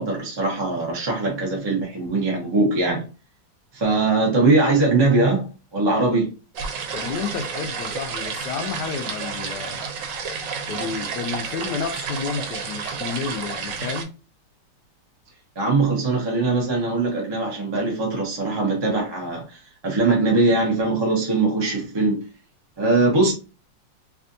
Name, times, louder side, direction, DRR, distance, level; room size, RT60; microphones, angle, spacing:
voice 1, 0.0-3.0 3.7-6.3 15.6-22.2 22.8-23.3, right 3 dB, 30° right, 0.4 m, -21 dB
sound 1, 6.5-14.0, right 6 dB, 80° right, 1.3 m, -31 dB
voice 2, 6.9-9.9 10.7-14.1, left 6 dB, 70° left, 1.1 m, -31 dB
3.4 x 2.5 x 2.6 m
omnidirectional pair, 2.0 m